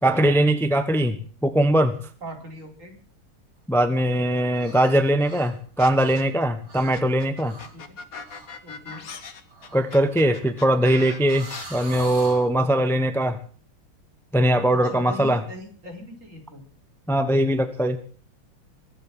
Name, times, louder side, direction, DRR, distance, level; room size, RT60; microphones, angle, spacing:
voice 1, 0.0-1.2 1.4-2.0 3.7-7.6 9.7-13.4 14.3-15.4 17.1-18.0, right 1 dB, 5° left, 9 dB, 0.5 m, -21 dB
voice 2, 2.2-2.9 7.7-7.9 8.6-9.0 14.7-16.6, equal, 35° right, 2 dB, 4.8 m, -40 dB
sound 1, 4.5-4.9 5.2-6.4 6.7-7.0 7.4-7.8 8.2-8.5 9.5-12.5, right 2 dB, 65° right, 5.3 m, -43 dB
sound 2, 5.8-6.4 6.9-11.6, left 5 dB, 45° left, 1.7 m, -39 dB
22.5 x 8.1 x 7.5 m, 0.43 s
omnidirectional pair, 2.4 m